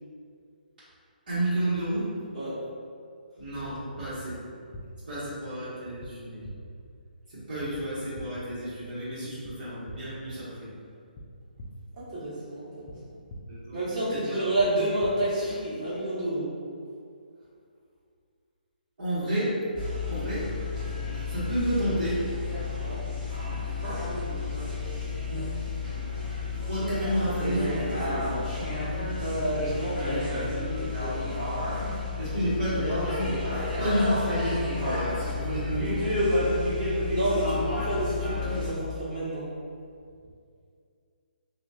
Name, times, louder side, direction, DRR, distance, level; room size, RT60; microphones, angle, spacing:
voice 1, 1.3-2.0 3.4-4.4 5.1-6.4 7.3-10.7 13.5-13.8 14.1-14.4 19.0-19.5 20.1-20.5 21.1-22.2 25.3-25.5 26.7-28.2 32.2-33.3 33.8-36.0, right 1 dB, 65° right, -15 dB, 1.2 m, -30 dB
sound 1, 4.7-4.8 6.0-6.1 6.4-6.5 7.7-7.8 8.1-8.3 9.4-9.5 9.9-10.0 11.1-11.2 11.6-11.7 12.9-13.0 13.3-13.4 14.6-14.7 15.0-15.1, left 1 dB, 30° left, 0.3 m, -41 dB
voice 2, 12.1-12.9 13.7-16.5 22.7-23.0 29.0-30.3 30.5-30.9 37.1-39.4, right 1 dB, 40° right, -11 dB, 1.3 m, -29 dB
sound 2, 19.7-38.7, left 3 dB, 10° right, 1.0 m, -30 dB
2.8 x 2.4 x 2.3 m, 2.3 s
hypercardioid pair, 150°, 5 cm